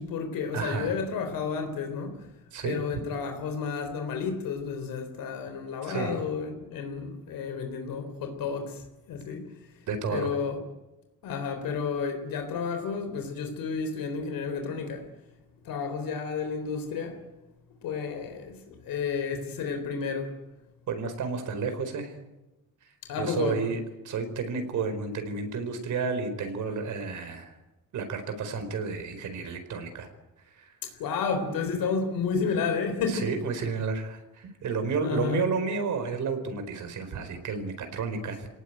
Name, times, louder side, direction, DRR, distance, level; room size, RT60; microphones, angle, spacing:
voice 1, 0.0-2.3 2.6-9.5 10.1-10.6 11.2-15.1 15.6-17.2 17.8-20.4 23.1-23.6 30.8-33.3 35.0-35.5, left 5 dB, 85° left, 3.8 m, -31 dB
voice 2, 0.5-0.9 2.5-3.0 5.8-6.2 9.9-10.4 20.9-22.1 23.2-27.5 27.9-30.1 30.6-30.8 33.1-38.5, right 5 dB, 60° right, 4.6 m, -31 dB
29.0 x 18.5 x 9.1 m
cardioid pair, 170°, 33 cm